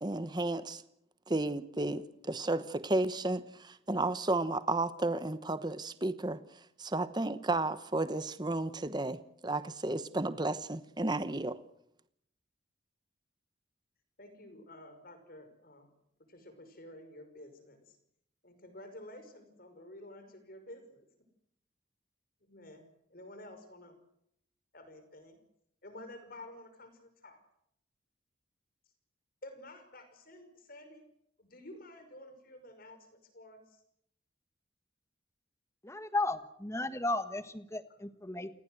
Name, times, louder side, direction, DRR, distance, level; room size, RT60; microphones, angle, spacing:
voice 1, 0.0-0.8 1.3-11.6, right 2 dB, 25° right, 1.0 m, -33 dB
voice 2, 14.2-15.9 16.3-17.9 18.4-21.1 22.5-22.8 23.1-23.9 24.7-25.4 25.8-27.4 29.4-31.0 31.4-33.6, left 1 dB, 50° left, 5.7 m, -51 dB
voice 3, 35.9-38.5, left 2 dB, 15° left, 1.4 m, -34 dB
29.0 x 19.5 x 7.8 m
head